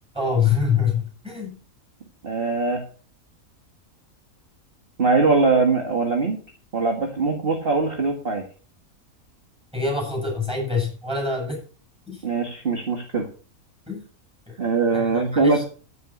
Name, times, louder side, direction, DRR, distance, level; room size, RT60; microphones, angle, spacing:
voice 1, 0.1-1.6 9.7-11.6 12.1-12.2 13.9-14.0 14.5-14.6 14.9-15.6, left 5 dB, 5° right, 0 dB, 7.5 m, -25 dB
voice 2, 2.2-2.8 5.0-6.4 6.7-8.4 12.2-13.3 14.6-15.6, right 4 dB, 40° right, 3 dB, 1.9 m, -21 dB
11.0 x 9.9 x 6.1 m, 0.39 s
omnidirectional pair, 1.5 m